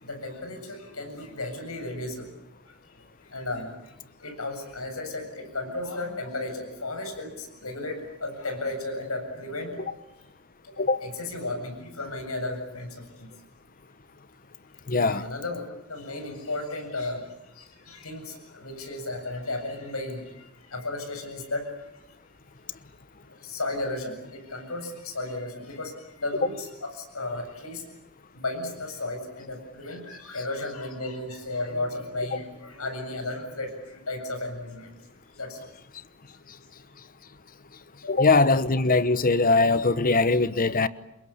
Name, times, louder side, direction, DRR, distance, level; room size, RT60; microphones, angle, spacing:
voice 1, 0.0-2.3 3.3-3.7 4.2-9.9 11.0-13.3 14.9-15.6 15.9-17.2 17.6-20.2 20.7-21.6 23.4-27.8 28.4-34.9 35.4-35.6 38.1-38.2, left 2 dB, 80° left, 7.7 m, -34 dB
voice 2, 14.9-15.2 38.1-40.9, left 3 dB, 40° left, 1.1 m, -21 dB
27.5 x 22.5 x 8.7 m
head